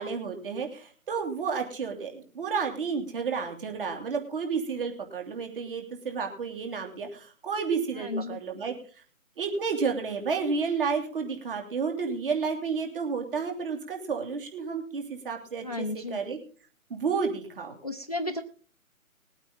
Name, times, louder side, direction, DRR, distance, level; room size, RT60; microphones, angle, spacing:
voice 1, 0.0-8.7 9.4-16.4 16.9-17.8, right 5 dB, 40° right, 4 dB, 3.0 m, -31 dB
voice 2, 8.0-8.4 15.6-16.2 17.8-18.4, left 2 dB, 30° left, 8 dB, 0.5 m, -33 dB
20.0 x 8.8 x 3.8 m, 0.38 s
hypercardioid pair, 160°, 43 cm